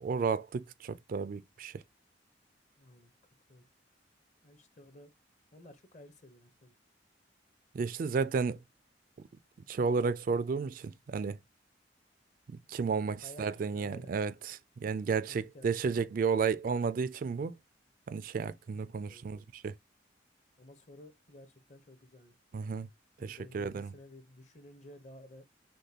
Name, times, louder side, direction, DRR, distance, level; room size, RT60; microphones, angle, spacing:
voice 1, 0.0-1.8 7.7-8.6 9.7-11.4 12.5-17.5 18.1-19.7 22.5-22.9 23.2-23.9, right 5 dB, 50° right, 0.3 m, -32 dB
voice 2, 2.8-3.1 3.5-3.6 4.4-5.1 5.5-6.7 13.2-14.1 15.2-15.7 19.1-19.5 20.6-22.4 23.2-25.4, left 1 dB, 40° left, 0.8 m, -54 dB
6.4 x 2.2 x 2.8 m
head